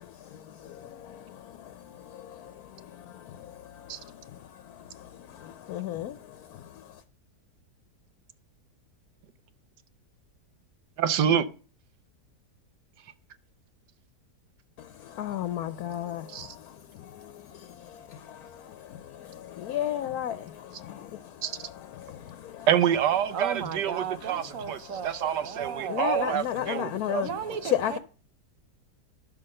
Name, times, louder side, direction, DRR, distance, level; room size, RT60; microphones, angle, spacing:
voice 1, 0.0-7.0 14.8-22.7 25.9-27.3 27.6-28.0, left 11 dB, 70° left, 1.1 m, -36 dB
voice 2, 11.0-11.5 16.3-16.5 21.4-21.5 22.7-27.2, right 9 dB, 85° right, 1.5 m, -27 dB
voice 3, 23.3-26.4 26.7-26.9 27.2-28.0, right 7 dB, 60° right, 1.1 m, -36 dB
11.5 x 6.0 x 6.5 m
omnidirectional pair, 1.8 m